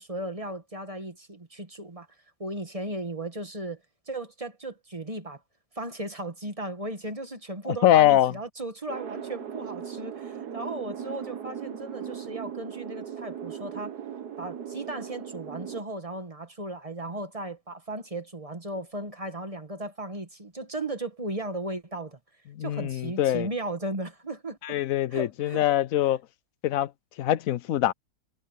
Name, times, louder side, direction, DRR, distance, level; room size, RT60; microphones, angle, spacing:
voice 1, 0.0-2.1 2.4-3.8 4.1-5.4 5.7-14.0 14.4-22.2 22.6-24.8 25.1-25.6, right 1 dB, 20° right, 1.6 m, -36 dB
voice 2, 7.8-8.3 22.6-23.5 24.6-26.2 26.6-26.9 27.2-27.9, left 12 dB, 70° left, 0.9 m, -23 dB
sound 1, 8.9-15.8, right 8 dB, 80° right, 1.8 m, -38 dB
omnidirectional pair, 1.7 m